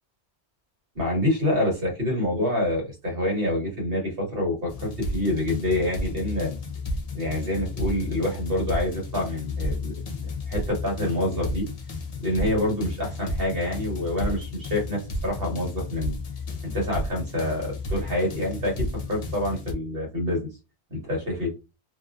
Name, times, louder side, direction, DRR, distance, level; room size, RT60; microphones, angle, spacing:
voice 1, 0.9-6.5 7.1-10.2 10.5-11.7 12.2-16.1 16.6-20.5 20.9-21.5, left 1 dB, 60° right, -1 dB, 1.6 m, -27 dB
sound 1, 4.7-19.7, left 2 dB, 45° left, 0.5 m, -32 dB
2.9 x 2.4 x 2.4 m, 0.27 s
omnidirectional pair, 1.1 m